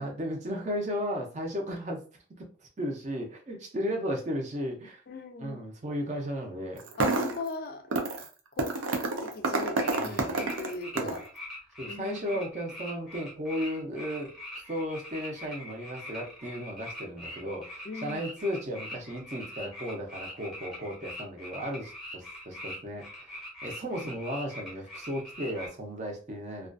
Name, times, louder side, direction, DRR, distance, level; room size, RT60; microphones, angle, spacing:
voice 1, 0.0-2.0 2.8-5.0 5.4-6.8 10.0-10.3 10.9-11.2 11.8-14.3 14.7-26.7, equal, 35° right, 0.5 m, -35 dB
voice 2, 5.1-5.6 7.0-8.1 8.5-11.2 11.8-12.4 17.8-18.2, left 3 dB, 45° left, 0.3 m, -40 dB
sound 1, 6.8-7.5 7.9-8.3 8.6-11.3, right 3 dB, 85° right, 0.5 m, -29 dB
sound 2, 9.6-25.7, left 1 dB, ahead, 0.7 m, -43 dB
2.4 x 2.2 x 2.4 m
head